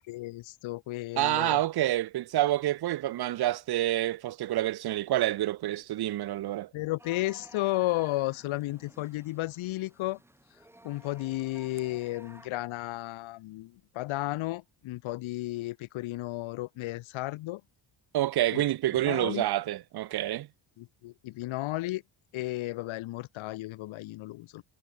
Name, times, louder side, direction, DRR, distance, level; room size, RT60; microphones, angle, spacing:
voice 1, 0.0-1.6 6.7-10.2 10.8-17.6 18.5-18.6 19.0-19.4 20.8-22.0 22.3-24.6, left 18 dB, 90° left, 2.0 m, -33 dB
voice 2, 1.2-6.7 18.1-20.5, right 14 dB, 55° right, 1.2 m, -28 dB
sound 1, 7.0-12.5, right 1 dB, 5° right, 3.9 m, -54 dB
cardioid pair, 165°, 46 cm